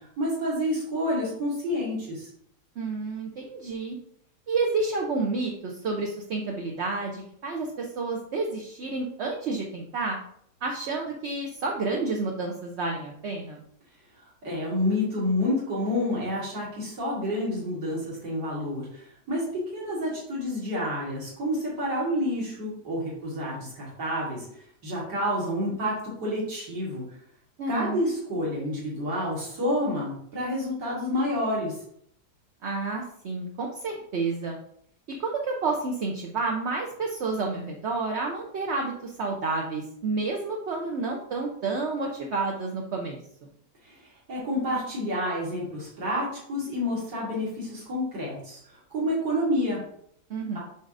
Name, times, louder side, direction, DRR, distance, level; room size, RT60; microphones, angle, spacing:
voice 1, 0.2-2.3 14.4-24.4 24.8-27.0 27.7-31.7 43.8-49.8, left 1 dB, 75° right, -6 dB, 2.5 m, -29 dB
voice 2, 2.8-4.0 4.5-10.2 10.6-13.6 27.6-28.0 32.6-34.6 35.2-43.2 50.3-50.6, right 3 dB, 55° right, 0 dB, 0.8 m, -30 dB
8.0 x 5.0 x 2.6 m, 0.67 s
omnidirectional pair, 1.9 m